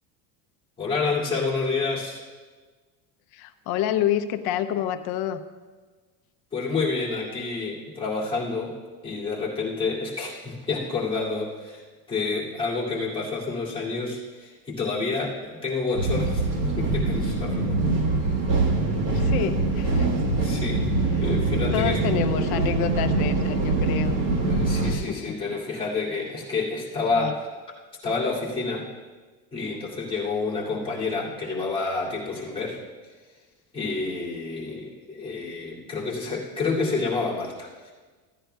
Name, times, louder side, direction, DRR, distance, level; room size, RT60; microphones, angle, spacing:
voice 1, 0.8-2.2 6.5-8.8 9.0-16.5 16.8-17.8 20.4-20.9 21.2-22.0 22.4-22.6 24.4-27.4 28.0-28.9 29.5-32.8 33.7-37.9, left 4 dB, 10° left, -7 dB, 2.2 m, -29 dB
voice 2, 3.3-5.4 19.1-20.1 21.7-24.2 24.8-25.4 27.1-27.3, left 10 dB, 50° left, 10 dB, 0.6 m, -28 dB
sound 1, 15.9-25.0, right 3 dB, 55° right, 1.6 m, -24 dB
15.5 x 10.0 x 2.3 m, 1.4 s
cardioid pair, 160°, 48 cm